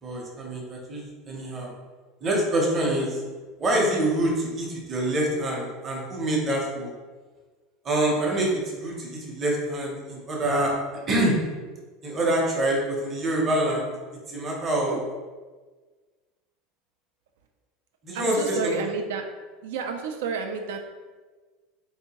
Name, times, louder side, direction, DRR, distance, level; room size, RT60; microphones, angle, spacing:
voice 1, 0.0-1.7 2.2-3.2 3.6-6.9 7.8-10.7 11.1-11.4 12.0-13.9 14.3-15.0 18.0-18.7, right 1 dB, 20° right, -2 dB, 0.6 m, -26 dB
voice 2, 18.1-19.3 19.6-20.8, right 5 dB, 85° right, 5 dB, 0.3 m, -30 dB
3.4 x 2.7 x 2.8 m, 1.4 s
supercardioid pair, 160°, 0 cm